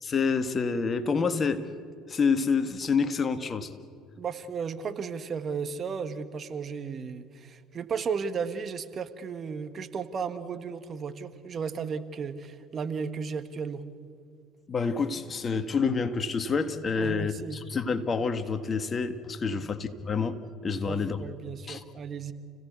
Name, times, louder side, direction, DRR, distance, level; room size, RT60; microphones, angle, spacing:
voice 1, 0.0-1.6 2.1-3.7 14.7-20.4 20.6-21.2 21.7-21.8, left 5 dB, 35° left, 9 dB, 1.7 m, -28 dB
voice 2, 4.2-13.8 16.9-17.6 19.5-19.7 20.8-22.3, right 6 dB, 40° right, 10 dB, 1.5 m, -34 dB
29.5 x 16.5 x 8.3 m, 2.3 s
hypercardioid pair, 65°, 0 cm